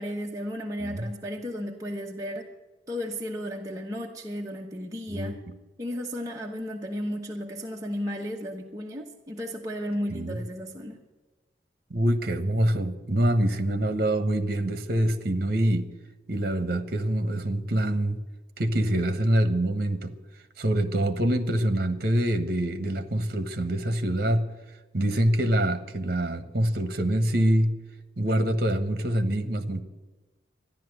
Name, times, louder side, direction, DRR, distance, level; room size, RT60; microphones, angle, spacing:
voice 1, 0.0-2.5 2.9-5.4 5.8-11.0, equal, 20° right, -2 dB, 1.1 m, -34 dB
voice 2, 11.9-15.9 16.3-18.2 18.6-20.1 20.6-24.5 24.9-27.7 28.2-29.8, right 1 dB, 55° right, 10 dB, 1.3 m, -25 dB
13.5 x 10.5 x 7.9 m, 1.2 s
head